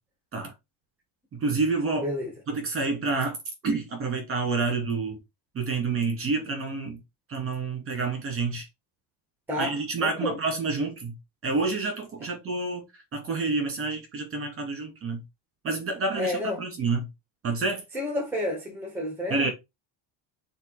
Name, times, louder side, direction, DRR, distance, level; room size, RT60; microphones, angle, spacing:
voice 1, 1.3-2.1 2.5-3.4 3.6-5.2 5.5-7.0 7.3-8.7 9.6-11.2 11.4-12.9 13.1-15.2 15.6-17.1 17.4-17.8 19.3-19.5, right 3 dB, 25° right, 2.5 m, -28 dB
voice 2, 2.0-2.3 9.5-9.7 10.0-10.4 16.1-16.6 17.9-19.5, left 1 dB, 5° right, 1.8 m, -30 dB
6.8 x 3.1 x 4.9 m
cardioid pair, 175°, 48 cm